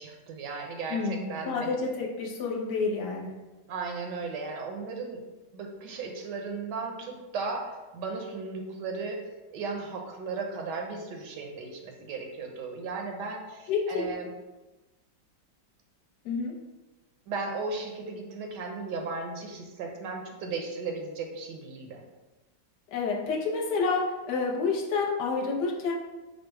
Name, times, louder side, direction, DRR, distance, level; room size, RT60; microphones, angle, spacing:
voice 1, 0.0-1.8 3.7-5.2 5.5-9.2 9.5-14.3 17.3-22.0, right 4 dB, 75° right, 2 dB, 1.3 m, -36 dB
voice 2, 0.9-3.3 13.7-14.1 16.2-16.5 22.9-25.9, left 4 dB, 70° left, -1 dB, 1.3 m, -29 dB
5.1 x 2.0 x 4.5 m, 1.1 s
omnidirectional pair, 1.9 m